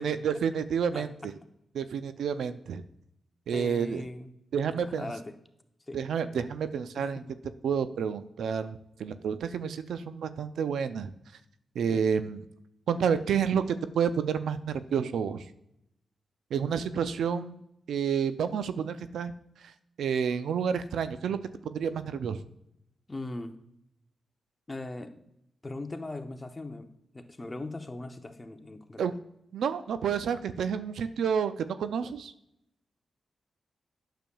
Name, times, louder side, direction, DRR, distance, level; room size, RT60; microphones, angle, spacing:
voice 1, 0.0-1.1 1.7-2.8 3.5-4.0 4.5-5.1 5.9-7.2 7.6-11.1 11.8-12.4 12.9-15.4 16.5-17.6 17.9-19.3 20.0-21.4 21.6-22.4 29.0-29.1 29.5-32.3, right 7 dB, 85° right, 12 dB, 0.4 m, -29 dB
voice 2, 0.9-1.3 3.5-4.3 4.7-5.4 5.9-6.0 7.0-7.6 11.9-12.1 23.1-23.6 24.7-25.3 25.6-29.1, left 2 dB, 30° left, 7 dB, 0.8 m, -40 dB
9.0 x 6.8 x 2.3 m, 0.80 s
cardioid pair, 50°, 0 cm